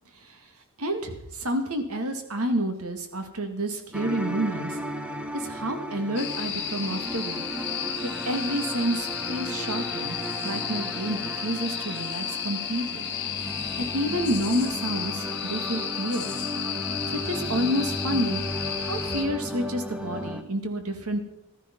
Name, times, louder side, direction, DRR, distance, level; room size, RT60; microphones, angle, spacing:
voice 1, 0.1-0.5 0.8-4.8 5.3-7.4 8.0-10.2 10.4-13.1 13.8-16.4 17.1-18.4 18.9-21.2, right 1 dB, 90° right, 7 dB, 2.1 m, -29 dB
sound 1, 3.9-20.4, equal, 5° right, 0.9 m, -35 dB
sound 2, 6.2-19.3, left 8 dB, 50° left, 1.8 m, -33 dB
15.5 x 12.5 x 5.4 m, 0.83 s
head